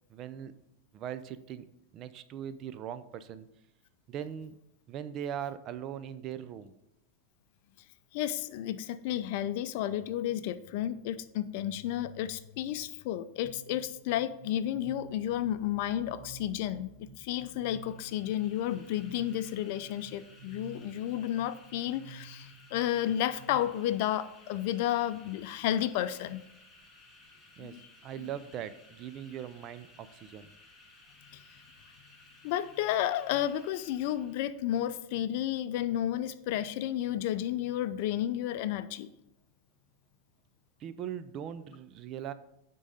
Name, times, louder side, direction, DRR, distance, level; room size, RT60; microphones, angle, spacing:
voice 1, 0.1-0.6 0.9-1.7 1.9-3.5 4.1-4.6 4.9-6.8 27.6-30.5 40.8-42.3, right 9 dB, 40° right, 13 dB, 0.5 m, -40 dB
voice 2, 8.1-26.4 27.6-27.9 28.2-28.3 31.3-31.4 32.4-39.1, left 12 dB, 60° left, 11 dB, 0.5 m, -32 dB
sound 1, 13.4-23.6, right 4 dB, 80° right, 1.7 m, -52 dB
sound 2, 17.7-34.6, left 2 dB, 10° left, 1.7 m, -58 dB
9.6 x 3.8 x 5.1 m, 0.84 s
supercardioid pair, 125°, 0 cm